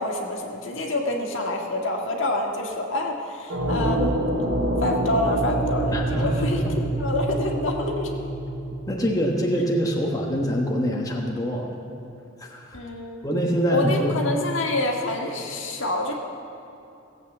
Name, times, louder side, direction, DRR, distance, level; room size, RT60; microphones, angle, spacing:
voice 1, 0.0-4.2 4.8-8.3 12.7-13.2 13.7-16.1, left 1 dB, 70° left, 1 dB, 1.8 m, -27 dB
sound 1, 3.5-9.3, right 1 dB, 75° right, 3.5 m, -26 dB
voice 2, 5.9-6.7 8.9-11.7 12.4-12.8 13.2-14.2, equal, 20° left, -1 dB, 1.2 m, -25 dB
17.5 x 8.2 x 7.2 m, 2.8 s
head